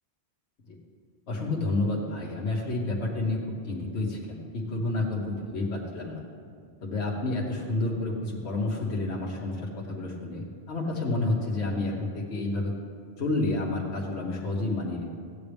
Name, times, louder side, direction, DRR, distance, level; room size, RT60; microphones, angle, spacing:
voice 1, 1.3-6.2 6.8-12.7 13.2-15.1, left 2 dB, 85° left, -2 dB, 1.5 m, -30 dB
14.0 x 9.2 x 3.5 m, 2.1 s
omnidirectional pair, 1.1 m